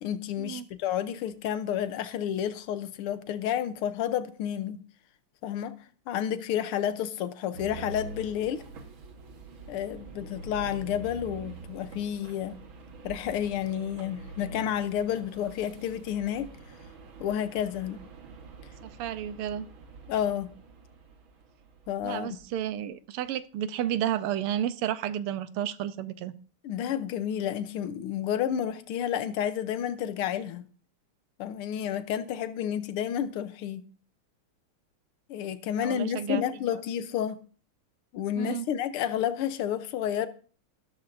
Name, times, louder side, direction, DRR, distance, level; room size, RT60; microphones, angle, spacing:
voice 1, 0.0-4.8 5.4-5.8 6.1-8.6 9.7-12.6 13.0-16.5 17.2-18.0 20.1-20.5 21.9-22.4 26.6-30.7 31.4-33.9 35.3-37.4 38.1-40.3, left 10 dB, 85° left, 1.7 m, -30 dB
sound 1, 7.5-22.7, right 4 dB, 65° right, 2.1 m, -46 dB
voice 2, 18.8-19.7 22.0-26.4 35.8-36.4 36.7-36.8 38.4-38.7, right 11 dB, 85° right, 1.6 m, -32 dB
13.0 x 12.5 x 2.6 m
omnidirectional pair, 2.4 m